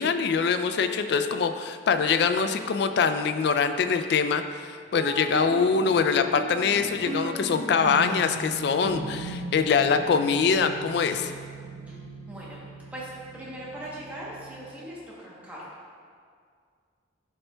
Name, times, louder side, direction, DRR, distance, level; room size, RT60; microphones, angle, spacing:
voice 1, 0.0-11.3, left 5 dB, 60° left, 8 dB, 0.3 m, -24 dB
sound 1, 4.9-14.7, right 1 dB, 75° right, 1.4 m, -37 dB
voice 2, 12.3-12.6 12.9-15.7, right 1 dB, 10° right, -7 dB, 0.9 m, -40 dB
10.5 x 4.4 x 2.2 m, 2.1 s
head